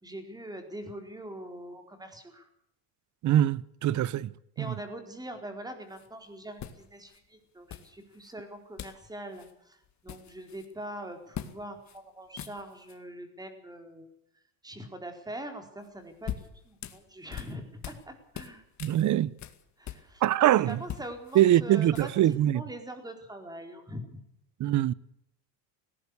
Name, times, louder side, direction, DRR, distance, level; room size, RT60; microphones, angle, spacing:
voice 1, 0.0-2.5 4.6-14.1 14.6-18.6 19.8-20.2 20.7-24.2, right 1 dB, 10° right, 4.4 m, -43 dB
voice 2, 3.2-4.3 4.6-4.8 18.8-19.3 20.2-20.8 21.3-22.6 24.6-24.9, right 12 dB, 40° right, 0.9 m, -23 dB
sound 1, 5.9-6.1 6.6-7.2 7.7-8.3 8.8-9.1 9.3-9.5 9.8-10.7 11.3-11.6 11.9-12.0 12.3-13.0 15.8-18.1 18.3-20.4 20.7-22.3, left 10 dB, 40° left, 2.2 m, -42 dB
18.5 x 18.0 x 8.3 m
cardioid pair, 120°, 44 cm